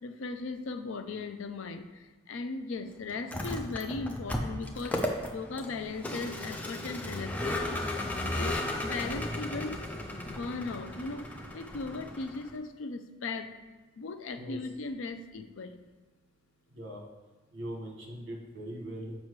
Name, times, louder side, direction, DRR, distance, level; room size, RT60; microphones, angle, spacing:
voice 1, 0.0-9.8 10.3-11.3 11.5-13.5 14.0-15.8, left 3 dB, 75° left, 8 dB, 0.4 m, -38 dB
Vehicle, 3.2-12.5, left 1 dB, 5° left, 0.4 m, -35 dB
voice 2, 16.7-17.0 17.5-19.2, right 1 dB, 60° right, 0 dB, 1.2 m, -40 dB
7.3 x 5.3 x 3.1 m, 1.2 s
head